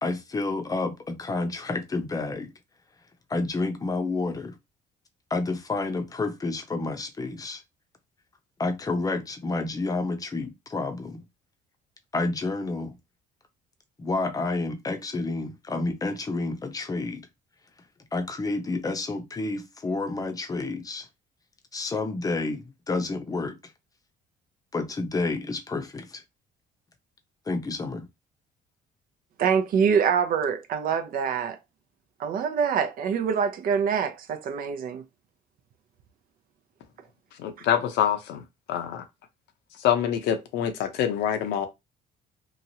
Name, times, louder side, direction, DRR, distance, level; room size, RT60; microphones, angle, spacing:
voice 1, 0.0-2.5 3.3-4.5 5.3-7.6 8.6-11.2 12.1-13.0 14.0-17.3 18.1-21.1 21.7-23.6 24.7-26.2 27.5-28.1, left 3 dB, 20° left, 0.6 m, -29 dB
voice 2, 29.4-31.6 32.2-35.0, right 7 dB, 60° right, 0.6 m, -25 dB
voice 3, 37.4-38.4 38.7-39.0 39.8-41.7, left 9 dB, 80° left, 0.7 m, -25 dB
3.0 x 2.4 x 2.7 m
cardioid pair, 110°, 17 cm